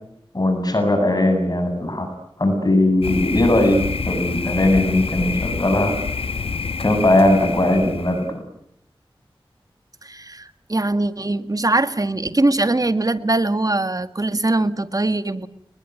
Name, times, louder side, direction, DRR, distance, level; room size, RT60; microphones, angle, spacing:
voice 1, 0.3-2.1 2.4-5.9 6.8-8.4, left 1 dB, 45° left, 6 dB, 7.9 m, -19 dB
Thunder, 3.0-8.3, left 4 dB, 80° left, 1.2 m, -27 dB
voice 2, 10.0-15.5, right 2 dB, 40° right, 11 dB, 1.8 m, -21 dB
29.5 x 21.0 x 9.4 m, 0.76 s
wide cardioid pair, 45°, 9 cm